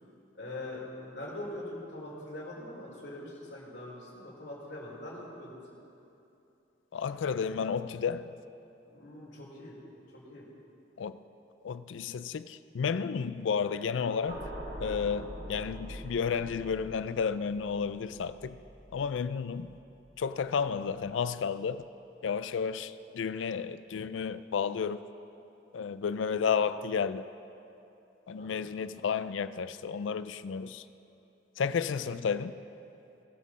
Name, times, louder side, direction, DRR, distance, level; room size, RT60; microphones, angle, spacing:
voice 1, 0.4-5.6 8.9-9.7 10.3-10.4 28.4-28.7, left 1 dB, 70° left, 2.9 m, -42 dB
voice 2, 6.9-8.3 11.0-11.2 11.6-14.4 14.8-18.6 18.9-19.8 20.2-21.8 22.2-25.0 25.7-27.3 28.3-30.8 31.6-32.6, left 6 dB, 90° left, 0.4 m, -32 dB
sound 1, 14.3-20.6 20.9-21.2, equal, 70° right, 3.0 m, -44 dB
20.0 x 7.5 x 4.1 m
head